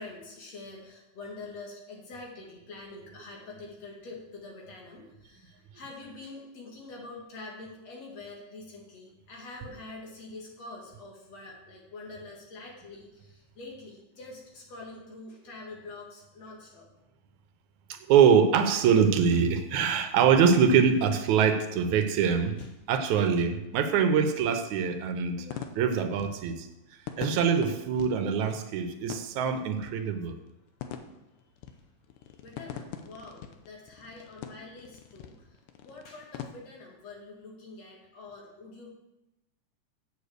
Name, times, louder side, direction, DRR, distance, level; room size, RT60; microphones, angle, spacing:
voice 1, 0.0-16.9 22.6-22.7 32.4-38.9, left 3 dB, 60° left, -1 dB, 3.1 m, -45 dB
voice 2, 17.9-22.6 22.9-26.7 27.2-30.4, right 7 dB, 80° right, 7 dB, 2.1 m, -24 dB
sound 1, 19.4-36.5, left 8 dB, 90° left, 2.3 m, -45 dB
8.3 x 7.0 x 6.5 m, 0.94 s
omnidirectional pair, 3.4 m